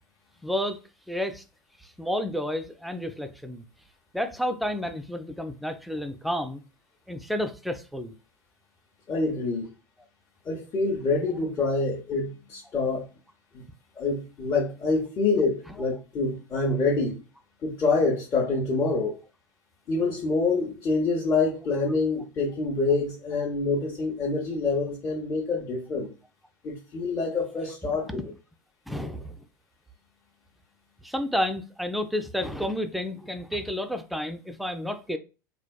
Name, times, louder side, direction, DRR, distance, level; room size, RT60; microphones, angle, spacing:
voice 1, 0.4-0.8 1.1-1.4 1.8-3.6 4.1-6.6 7.1-8.1 27.8-28.3 28.9-29.4 31.0-35.2, equal, ahead, 0.3 m, -31 dB
voice 2, 9.1-9.7 10.4-13.1 13.5-13.6 14.0-17.2 17.6-19.2 19.9-26.1 26.6-28.2, left 3 dB, 30° left, 0.7 m, -26 dB
3.3 x 2.2 x 2.2 m
figure-of-eight pair, 80°, 10 cm